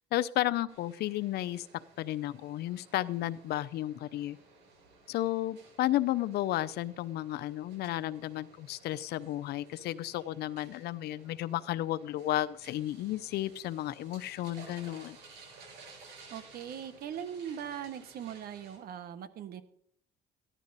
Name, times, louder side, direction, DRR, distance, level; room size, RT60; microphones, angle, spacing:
voice 1, 0.1-1.7 2.0-4.4 5.1-15.2, left 14 dB, 70° left, 14 dB, 0.6 m, -33 dB
sound 1, 0.7-18.8, right 4 dB, 85° right, 6.7 m, -56 dB
voice 2, 16.3-19.6, right 9 dB, 65° right, 11 dB, 1.3 m, -40 dB
15.0 x 11.0 x 4.1 m, 0.65 s
cardioid pair, 110°, 17 cm